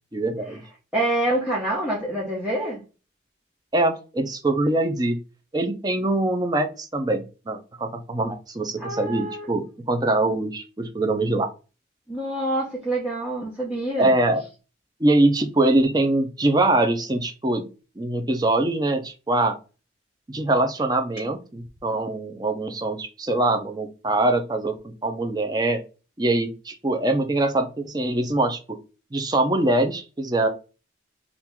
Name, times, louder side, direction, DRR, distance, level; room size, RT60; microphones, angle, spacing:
voice 1, 0.1-0.6 3.7-5.2 5.5-11.5 14.0-14.4 15.0-17.6 18.0-19.6 20.3-25.8 26.2-28.8 29.1-30.5, right 2 dB, 20° right, 5 dB, 0.5 m, -23 dB
voice 2, 0.9-2.8 8.8-9.5 12.1-14.2, right 1 dB, 5° right, -7 dB, 0.9 m, -26 dB
2.9 x 2.5 x 3.5 m, 0.32 s
head